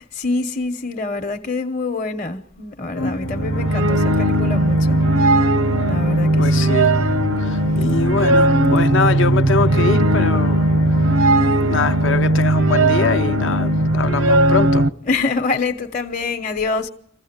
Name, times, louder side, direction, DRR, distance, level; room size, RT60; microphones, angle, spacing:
voice 1, 0.0-5.0 5.8-6.6 15.1-16.9, left 3 dB, 40° left, 1.0 m, -25 dB
sound 1, 2.9-14.9, left 2 dB, 85° left, 1.1 m, -30 dB
sound 2, 3.1-14.9, right 1 dB, 90° right, 0.9 m, -17 dB
voice 2, 3.8-4.1 6.4-7.0 7.4-10.7 11.6-14.9, left 4 dB, 65° left, 0.8 m, -23 dB
26.0 x 15.5 x 8.8 m
head